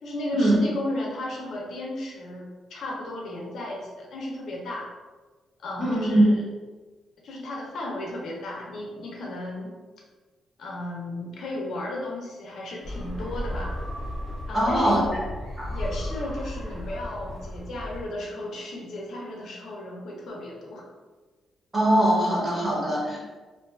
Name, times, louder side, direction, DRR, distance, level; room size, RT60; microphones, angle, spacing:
voice 1, 0.0-4.9 5.6-6.4 7.2-9.8 10.6-13.7 14.5-15.1 15.7-20.9, left 1 dB, 65° left, -3 dB, 0.5 m, -34 dB
voice 2, 5.8-6.2 14.5-15.0 15.6-15.7 21.7-23.2, right 1 dB, 20° right, -6 dB, 0.8 m, -22 dB
sound 1, 12.8-18.0, equal, 65° right, 0.9 m, -34 dB
2.5 x 2.2 x 2.3 m, 1.3 s
cardioid pair, 140°, 0 cm